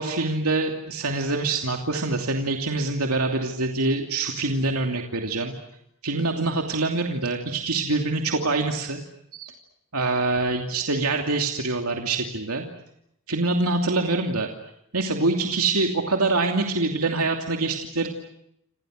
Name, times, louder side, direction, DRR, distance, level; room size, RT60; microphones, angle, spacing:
voice 1, 0.0-5.5 6.0-9.0 9.3-9.5 9.9-12.7 13.3-14.5 14.9-18.1, right 3 dB, 75° right, 2 dB, 2.8 m, -25 dB
29.5 x 27.5 x 6.5 m, 0.78 s
head